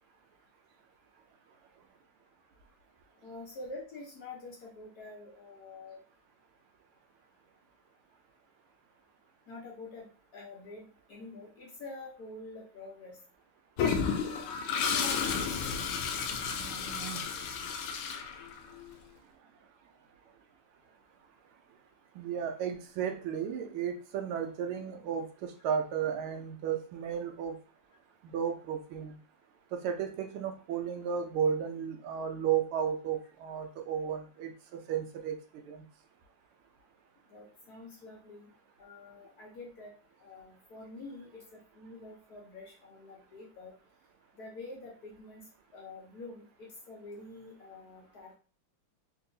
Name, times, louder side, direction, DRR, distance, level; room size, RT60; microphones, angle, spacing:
voice 1, 3.2-6.0 9.5-10.1 10.3-13.2 14.9-15.3 37.3-38.5 38.8-39.9 40.2-43.7 44.4-45.4 45.7-48.4, left 2 dB, 55° left, -3 dB, 1.2 m, -47 dB
Toilet flush, 13.8-18.8, left 6 dB, 90° left, 1.5 m, -32 dB
voice 2, 16.5-17.2 22.1-27.5 28.2-29.1 29.7-34.5 34.9-35.4 35.7-35.8, right 8 dB, 85° right, 5 dB, 1.5 m, -34 dB
3.9 x 2.8 x 2.6 m, 0.37 s
omnidirectional pair, 2.3 m